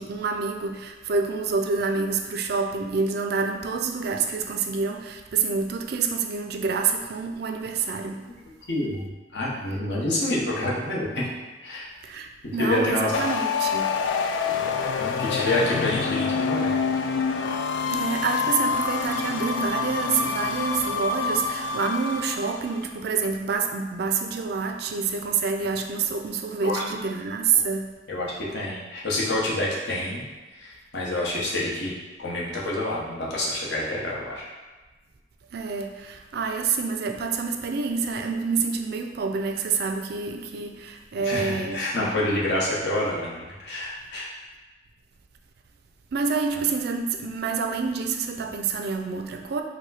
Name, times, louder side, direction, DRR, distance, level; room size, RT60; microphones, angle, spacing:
voice 1, 0.0-8.2 12.0-14.0 17.9-27.9 35.5-42.4 46.1-49.6, right 5 dB, 60° right, 5 dB, 0.4 m, -27 dB
voice 2, 8.7-11.3 11.6-11.9 12.6-13.1 15.0-16.8 26.6-26.8 27.5-27.6 28.1-30.3 30.5-34.5 41.2-44.3, left 1 dB, 70° left, -5 dB, 1.1 m, -27 dB
sound 1, 13.1-22.8, left 5 dB, 90° left, 0.3 m, -27 dB
4.8 x 2.2 x 4.0 m, 1.2 s
head